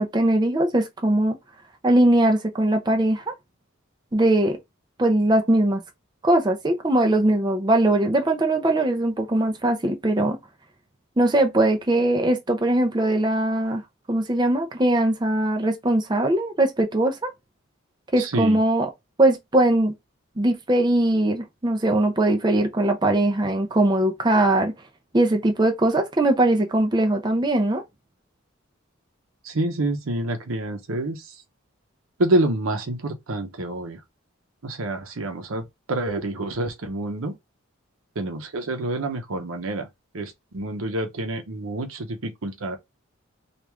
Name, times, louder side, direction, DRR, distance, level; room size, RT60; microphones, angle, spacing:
voice 1, 0.0-1.4 1.8-3.2 4.1-4.6 5.0-5.8 6.2-10.4 11.2-13.8 14.1-17.3 18.1-18.9 19.2-19.9 20.4-24.7 25.1-27.8, right 1 dB, 20° right, 0.5 m, -20 dB
voice 2, 18.2-18.6 29.4-31.3 32.2-34.0 34.6-35.6 35.9-37.3 38.2-39.9 40.1-42.8, right 2 dB, 80° right, 0.8 m, -27 dB
3.1 x 2.5 x 3.4 m
head